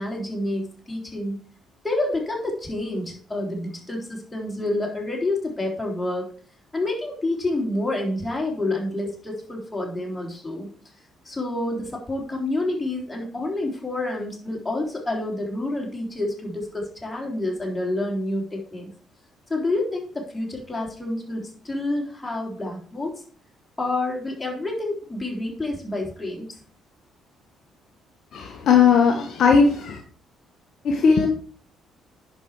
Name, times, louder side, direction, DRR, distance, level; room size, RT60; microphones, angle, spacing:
voice 1, 0.0-1.4 1.8-6.3 6.7-10.7 11.3-18.9 19.5-23.2 23.8-26.5, left 2 dB, 15° left, -1 dB, 3.7 m, -28 dB
voice 2, 28.3-30.0 30.8-31.3, left 5 dB, 55° left, 4 dB, 1.1 m, -18 dB
10.5 x 5.1 x 4.6 m, 0.43 s
figure-of-eight pair, 45°, 0 cm